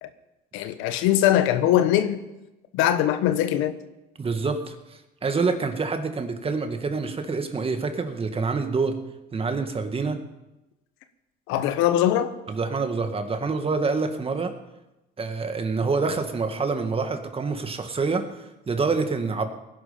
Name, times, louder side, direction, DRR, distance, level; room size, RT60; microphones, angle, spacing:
voice 1, 0.5-2.2 2.7-3.7 11.5-12.3, left 12 dB, 80° left, 1.2 m, -21 dB
voice 2, 4.2-9.0 9.3-10.2 12.5-14.5 15.2-19.5, right 4 dB, 30° right, 1.9 m, -27 dB
18.5 x 11.0 x 5.3 m
supercardioid pair, 95°, 20 cm